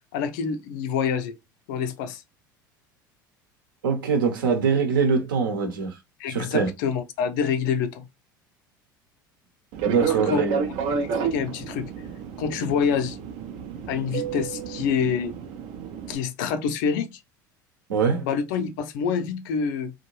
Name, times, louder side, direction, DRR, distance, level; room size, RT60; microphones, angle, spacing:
voice 1, 0.1-1.3 1.7-2.2 6.2-8.1 10.0-10.6 11.0-11.9 12.4-13.2 13.9-15.3 16.1-17.1 18.2-19.9, left 6 dB, 65° left, 0.5 m, -27 dB
voice 2, 3.8-6.0 6.3-6.7 9.8-10.7 17.9-18.3, right 5 dB, 80° right, 0.8 m, -23 dB
Fixed-wing aircraft airplane, 9.7-16.1, right 7 dB, 55° right, 0.5 m, -30 dB
2.6 x 2.2 x 2.9 m
hypercardioid pair, 75°, 11 cm